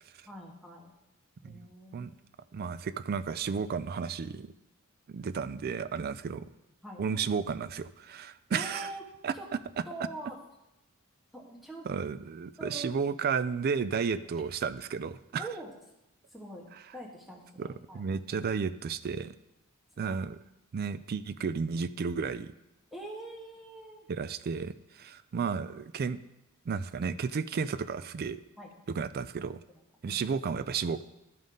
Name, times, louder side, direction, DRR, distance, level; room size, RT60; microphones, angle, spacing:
voice 1, 0.2-0.9 1.4-2.1 6.8-7.2 8.5-9.0 9.3-9.5 9.9-10.4 11.3-11.9 12.6-13.0 13.9-14.1 15.4-15.7 16.3-16.6 16.9-18.0 20.1-20.2 22.9-24.1 28.6-28.7 29.7-29.8 30.1-30.2, right 2 dB, ahead, -2 dB, 1.4 m, -44 dB
voice 2, 2.5-4.5 5.1-6.5 7.0-8.9 9.2-9.3 11.9-15.5 17.6-19.4 20.0-20.4 20.7-22.5 24.1-26.2 26.7-28.4 28.9-29.6 30.0-31.0, right 5 dB, 45° right, 15 dB, 0.3 m, -33 dB
12.5 x 5.4 x 3.8 m, 0.91 s
head